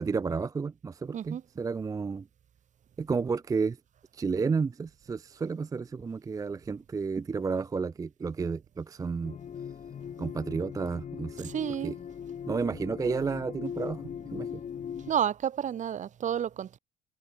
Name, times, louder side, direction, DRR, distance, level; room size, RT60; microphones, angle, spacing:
voice 1, 0.0-2.3 3.0-3.8 4.1-9.4 10.2-11.5 11.8-11.9 12.5-14.0 14.3-14.5, right 5 dB, 20° right, 0.4 m, -31 dB
sound 1, 9.2-15.1, left 8 dB, 45° left, 3.3 m, -40 dB
voice 2, 11.4-12.0 15.1-16.8, right 9 dB, 45° right, 1.4 m, -30 dB
cardioid pair, 110°, 17 cm